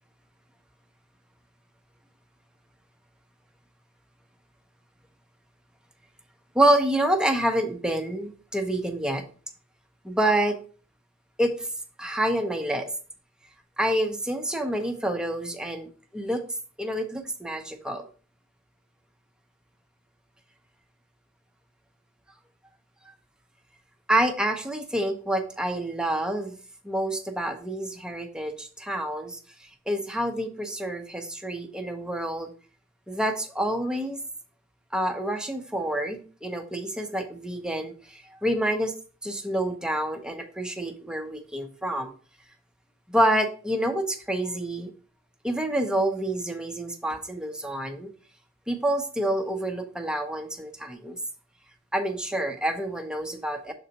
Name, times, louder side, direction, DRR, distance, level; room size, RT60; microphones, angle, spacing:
voice 1, 6.5-9.2 10.0-10.6 11.4-11.7 12.0-12.9 13.8-16.4 16.8-18.1 24.1-26.6 26.8-29.4 29.9-32.5 33.1-34.2 34.9-38.9 39.2-42.1 43.1-44.9 45.4-48.1 48.7-51.2 51.9-53.7, right 1 dB, 5° right, 4 dB, 0.8 m, -27 dB
6.8 x 4.0 x 4.0 m, 0.39 s
head